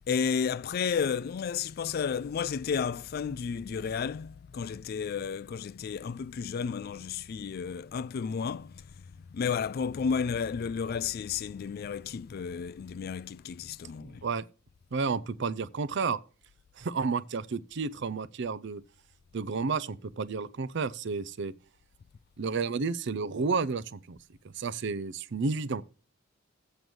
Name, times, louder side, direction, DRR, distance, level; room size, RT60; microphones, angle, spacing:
voice 1, 0.1-8.9 9.3-14.2, left 6 dB, 45° left, 0.3 m, -32 dB
voice 2, 14.0-14.4 14.9-16.2 16.8-18.8 19.3-21.5 22.4-24.2 24.4-25.8, right 4 dB, 60° right, 0.5 m, -31 dB
7.9 x 5.2 x 6.2 m
head